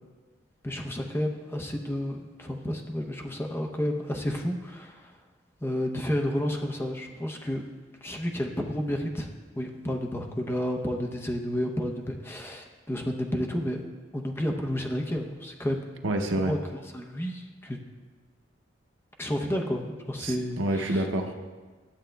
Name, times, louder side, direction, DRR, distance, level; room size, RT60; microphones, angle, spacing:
voice 1, 0.6-5.1 5.6-7.6 8.0-9.3 9.6-13.8 14.1-15.9 16.4-17.8 19.2-21.1, equal, 15° left, 2 dB, 0.6 m, -31 dB
voice 2, 16.0-16.5 20.2-21.3, right 1 dB, 85° right, 3 dB, 0.7 m, -28 dB
12.5 x 7.4 x 2.3 m, 1.4 s
head